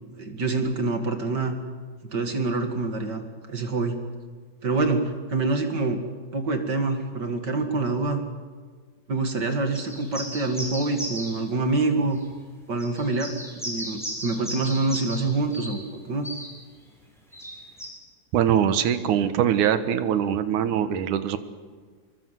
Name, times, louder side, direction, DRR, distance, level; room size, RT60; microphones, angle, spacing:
voice 1, 0.1-1.6 2.1-4.0 4.6-6.0 6.3-8.2 9.1-12.2 12.7-13.3 13.6-16.3, right 3 dB, 35° right, 5 dB, 2.3 m, -26 dB
sound 1, 9.7-11.4 12.2-12.3 12.8-15.2 15.5-15.8 16.2-16.5 17.3-17.9, equal, ahead, 6.8 m, -35 dB
voice 2, 18.3-21.4, right 9 dB, 75° right, 11 dB, 2.7 m, -22 dB
26.0 x 23.0 x 7.6 m, 1.5 s
omnidirectional pair, 3.6 m